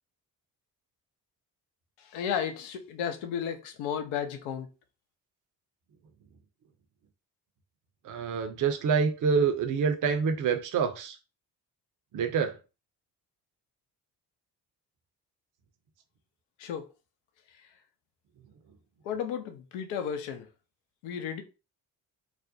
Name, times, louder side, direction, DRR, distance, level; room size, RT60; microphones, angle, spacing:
voice 1, 2.0-4.7 16.6-16.9 19.0-20.5 21.0-21.4, left 8 dB, 70° left, 0.6 m, -33 dB
voice 2, 8.0-11.2 12.1-12.5, right 6 dB, 40° right, 0.6 m, -26 dB
2.4 x 2.1 x 2.6 m
hypercardioid pair, 45°, 49 cm